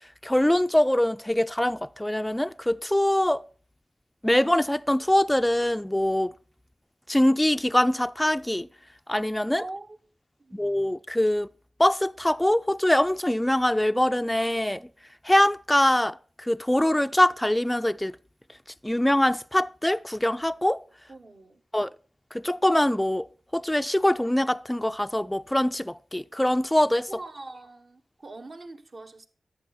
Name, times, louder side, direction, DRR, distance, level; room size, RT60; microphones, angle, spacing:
voice 1, 0.2-3.4 4.2-6.3 7.1-8.7 9.1-9.6 10.5-11.5 11.8-14.9 15.2-18.2 18.8-20.8 21.7-21.9 22.3-23.3 23.5-27.1, left 1 dB, 10° left, 0.4 m, -23 dB
voice 2, 9.6-10.0 10.4-10.6 21.1-21.6 27.1-29.3, right 2 dB, 55° right, 1.3 m, -42 dB
11.5 x 7.8 x 4.2 m
cardioid pair, 45°, 0 cm